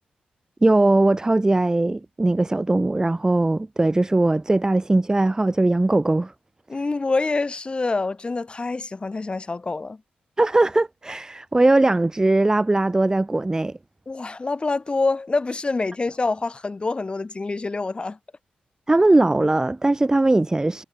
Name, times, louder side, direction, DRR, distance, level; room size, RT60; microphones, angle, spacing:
voice 1, 0.6-6.3 10.4-13.8 18.9-20.8, right 2 dB, 20° right, 0.8 m, -20 dB
voice 2, 6.7-10.0 14.1-18.2, left 3 dB, 35° left, 2.6 m, -26 dB
cardioid pair, 55°, 3 cm